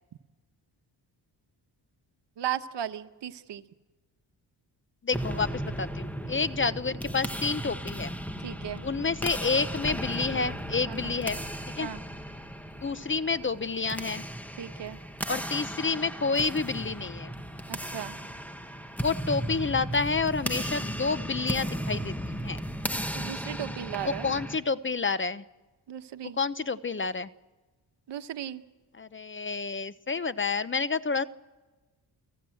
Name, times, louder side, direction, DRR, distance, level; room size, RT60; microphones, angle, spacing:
voice 1, 2.4-3.6 8.4-8.8 10.9-11.2 11.8-12.0 14.6-15.0 17.7-18.1 23.1-24.3 25.9-26.4 28.1-28.6, right 11 dB, 70° right, 10 dB, 1.2 m, -36 dB
voice 2, 5.0-8.1 8.8-11.4 11.8-11.9 12.8-14.2 15.3-17.3 19.0-22.6 24.0-25.4 26.4-27.3 29.0-31.3, left 4 dB, 25° left, 15 dB, 0.8 m, -29 dB
sound 1, 5.1-24.6, equal, 5° left, 1.8 m, -35 dB
30.0 x 17.0 x 7.9 m, 1.2 s
cardioid pair, 75°, 44 cm